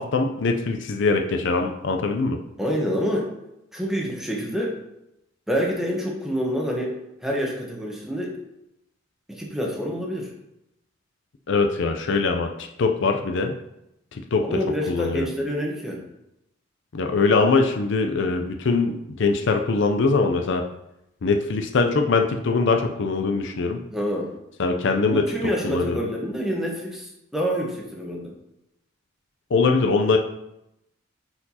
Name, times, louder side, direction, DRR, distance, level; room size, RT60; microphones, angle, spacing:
voice 1, 0.0-2.4 11.5-13.5 14.1-14.4 14.9-15.3 16.9-20.6 21.2-23.8 24.6-25.3 25.6-26.1 29.5-30.2, left 4 dB, 60° left, 4 dB, 0.5 m, -22 dB
voice 2, 2.6-3.3 3.7-4.8 5.5-6.9 7.2-8.3 9.3-10.3 14.4-16.0 23.9-24.3 25.1-28.3, equal, ahead, -2 dB, 1.0 m, -27 dB
8.7 x 4.4 x 2.8 m, 0.86 s
head